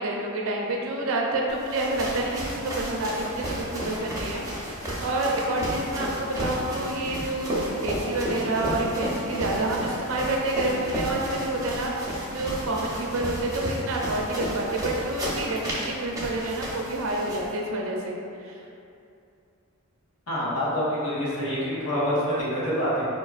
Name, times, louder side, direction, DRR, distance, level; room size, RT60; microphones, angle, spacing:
voice 1, 0.0-18.6, right 2 dB, 65° right, -1 dB, 0.5 m, -28 dB
sound 1, 1.5-17.5, equal, 15° right, 0.7 m, -33 dB
voice 2, 20.3-23.1, equal, 85° left, -9 dB, 1.1 m, -26 dB
4.5 x 2.8 x 2.4 m, 2.6 s
head